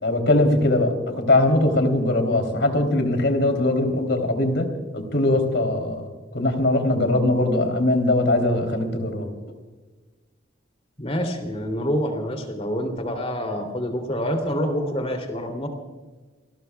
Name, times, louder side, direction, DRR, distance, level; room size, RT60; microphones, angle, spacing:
voice 1, 0.0-4.7 4.9-6.1 6.3-9.3, left 1 dB, 75° left, 5 dB, 3.3 m, -21 dB
voice 2, 11.0-15.7, equal, 35° left, 5 dB, 3.0 m, -27 dB
29.0 x 20.0 x 2.4 m, 1.3 s
head